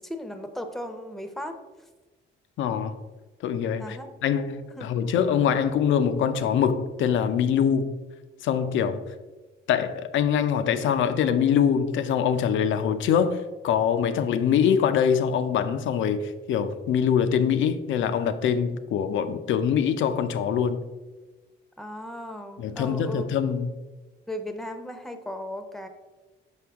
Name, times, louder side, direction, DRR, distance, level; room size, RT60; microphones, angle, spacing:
voice 1, 0.0-1.6 3.8-4.1 4.8-4.9 21.8-23.2 24.3-25.9, left 1 dB, ahead, 0.7 m, -36 dB
voice 2, 2.6-3.0 3.4-7.9 8.4-9.0 9.7-20.8 22.6-23.8, left 8 dB, 75° left, 0.5 m, -24 dB
6.2 x 5.1 x 3.5 m
cardioid pair, 90°, 20 cm